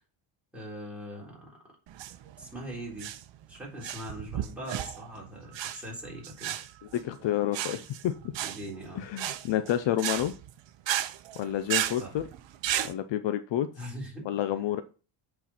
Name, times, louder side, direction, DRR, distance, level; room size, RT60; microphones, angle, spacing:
voice 1, 0.5-1.4 2.4-3.1 3.5-6.6 8.4-9.1 12.0-12.2 13.8-14.3, equal, ahead, -5 dB, 3.6 m, -41 dB
sound 1, 1.9-12.9, right 12 dB, 65° right, 0.8 m, -34 dB
voice 2, 6.9-8.1 8.9-10.3 11.4-12.2 12.8-13.7 14.2-14.8, left 12 dB, 60° left, 11 dB, 0.7 m, -29 dB
8.1 x 4.6 x 4.3 m, 0.35 s
cardioid pair, 150°, 50 cm